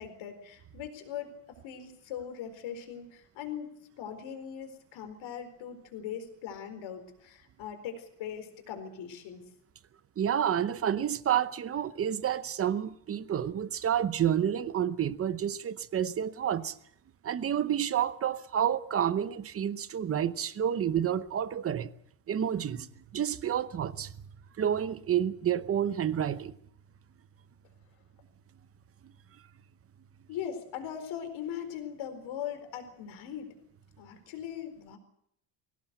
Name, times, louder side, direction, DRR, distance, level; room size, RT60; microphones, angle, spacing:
voice 1, 0.0-3.7 4.0-9.4 30.3-33.5 34.0-35.0, left 9 dB, 65° left, 4.4 m, -40 dB
voice 2, 10.2-16.8 17.2-21.9 22.3-22.9 23.1-24.1 24.6-26.6, right 9 dB, 30° right, 0.8 m, -29 dB
22.0 x 17.5 x 8.0 m
cardioid pair, 165°, 49 cm